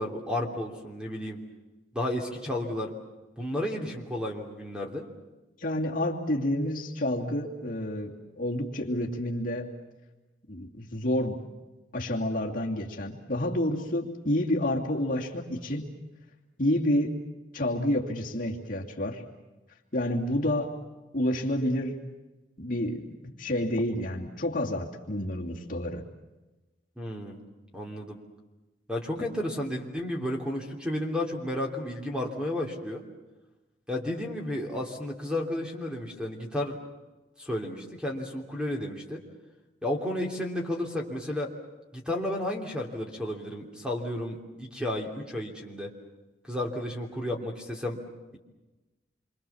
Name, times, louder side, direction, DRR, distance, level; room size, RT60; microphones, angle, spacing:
voice 1, 0.0-1.4 1.9-2.9 3.4-5.1 27.0-27.4 27.7-28.2 28.9-33.0 33.9-36.8 37.4-39.2 39.8-41.5 41.9-45.9 46.5-48.0, left 1 dB, 5° right, 1 dB, 3.2 m, -32 dB
voice 2, 5.6-9.7 10.5-11.4 11.9-15.9 16.6-17.2 17.5-19.2 19.9-20.7 21.1-22.0 22.6-26.0 29.2-29.3, left 1 dB, 45° left, -1 dB, 2.7 m, -29 dB
28.0 x 25.0 x 7.2 m, 1.1 s
head